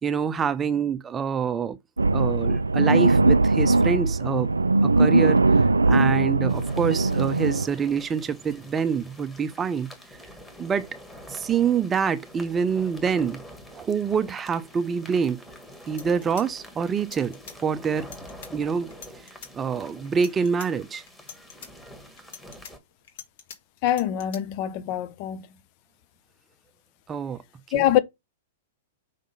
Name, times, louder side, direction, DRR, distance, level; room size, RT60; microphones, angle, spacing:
voice 1, 0.0-1.8 2.1-4.5 4.8-5.4 5.9-9.9 10.6-10.9 11.3-13.4 13.7-15.4 15.9-18.1 18.5-18.9 19.5-21.0 27.1-27.4 27.7-27.8, right 6 dB, 20° right, 0.6 m, -26 dB
sound 1, 2.0-7.7, right 3 dB, 90° right, 0.3 m, -20 dB
sound 2, 6.5-22.8, equal, 5° left, 1.8 m, -46 dB
sound 3, 15.5-15.6 15.9-17.6 18.0-18.5 18.9-19.5 20.1-20.7 21.1-21.7 22.2-23.6 23.9-24.4, left 7 dB, 60° left, 1.7 m, -44 dB
voice 2, 23.8-25.5 27.7-28.0, left 12 dB, 45° left, 0.7 m, -24 dB
5.7 x 3.6 x 5.4 m
figure-of-eight pair, 105°, 0 cm